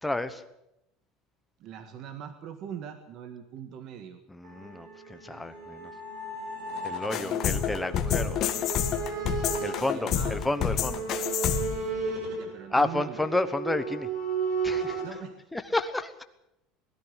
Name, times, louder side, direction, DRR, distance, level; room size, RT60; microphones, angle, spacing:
voice 1, 0.0-0.4 4.3-5.9 6.8-8.4 9.6-11.0 12.7-14.1 14.6-15.0 15.5-16.2, left 2 dB, 5° left, 9 dB, 1.1 m, -30 dB
voice 2, 1.6-4.2 7.0-7.6 9.7-10.4 12.3-13.2 15.0-15.4, right 9 dB, 40° right, 8 dB, 1.6 m, -41 dB
sound 1, 4.4-15.1, right 4 dB, 60° right, 7.9 m, -35 dB
sound 2, 7.1-11.9, left 9 dB, 35° left, 1.6 m, -28 dB
21.0 x 14.0 x 8.9 m, 0.83 s
cardioid pair, 175°, 0 cm